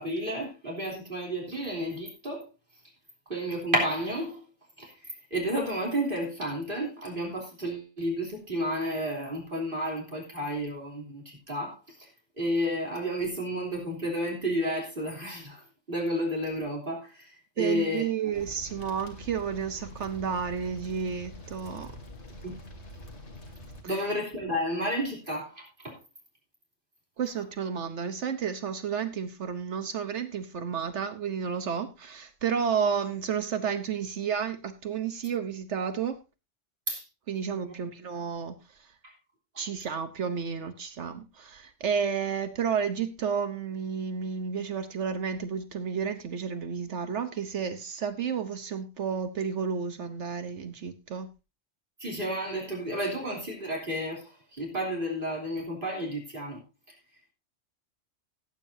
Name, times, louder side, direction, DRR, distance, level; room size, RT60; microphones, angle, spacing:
voice 1, 0.0-2.5 3.3-4.4 4.8-12.1 12.4-17.3 17.6-18.0 22.4-22.6 23.8-26.0 36.9-37.0 37.6-37.7 39.0-39.1 52.0-56.6, equal, 45° right, -2 dB, 3.5 m, -31 dB
voice 2, 17.6-22.0 23.9-24.1 27.2-36.2 37.3-38.9 39.6-51.3, right 7 dB, 70° right, 10 dB, 1.2 m, -31 dB
sound 1, 18.3-23.8, left 1 dB, 70° left, 2.5 m, -45 dB
17.5 x 9.0 x 2.7 m, 0.27 s
omnidirectional pair, 1.2 m